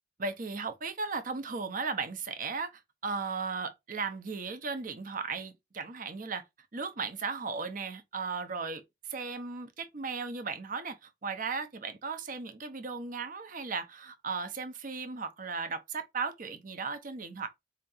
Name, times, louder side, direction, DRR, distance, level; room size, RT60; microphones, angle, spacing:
voice 1, 0.2-6.4 6.7-17.5, right 4 dB, 45° right, 0.7 m, -36 dB
4.5 x 2.9 x 2.6 m
head